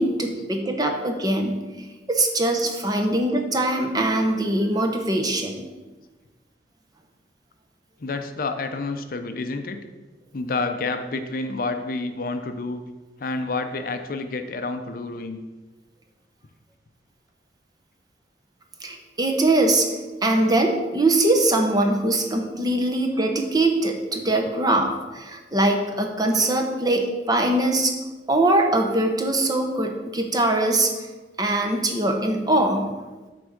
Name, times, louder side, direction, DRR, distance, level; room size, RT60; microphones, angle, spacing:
voice 1, 0.0-1.6 2.1-5.6 18.8-19.9 20.2-27.9 28.3-30.9 31.4-32.9, right 2 dB, 20° right, 3 dB, 0.8 m, -22 dB
voice 2, 8.0-9.8 10.3-12.8 13.2-15.4, left 3 dB, 50° left, 7 dB, 0.5 m, -29 dB
7.9 x 3.5 x 6.4 m, 1.2 s
head